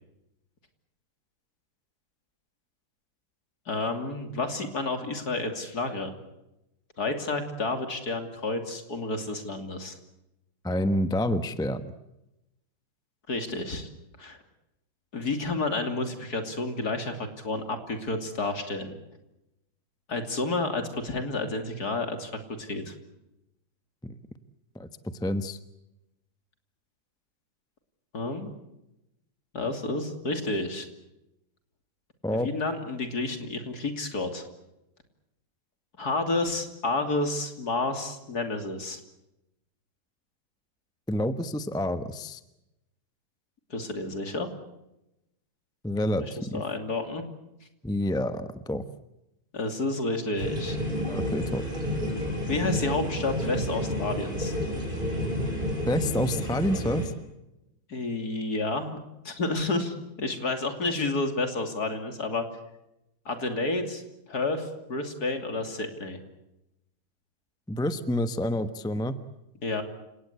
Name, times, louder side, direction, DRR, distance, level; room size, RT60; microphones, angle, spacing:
voice 1, 3.7-6.1 7.0-10.0 13.3-13.9 14.2-14.4 15.1-18.9 20.1-22.3 22.6-22.9 28.1-28.5 29.5-30.9 32.3-34.5 36.0-39.0 43.7-44.5 46.2-47.2 49.5-50.8 52.5-54.5 57.9-59.0 59.2-62.4 63.2-64.0 64.3-66.2 69.6-69.8, left 2 dB, 50° left, 6 dB, 3.4 m, -30 dB
voice 2, 10.6-11.9 24.0-24.1 24.7-24.9 25.2-25.6 32.2-32.5 41.1-42.4 45.8-46.6 47.8-48.8 51.1-51.6 55.9-57.1 67.7-69.2, left 1 dB, 5° left, 11 dB, 0.6 m, -28 dB
sound 1, 50.4-57.1, left 1 dB, 25° right, 6.1 m, -30 dB
29.0 x 18.0 x 8.3 m, 0.90 s
omnidirectional pair, 2.1 m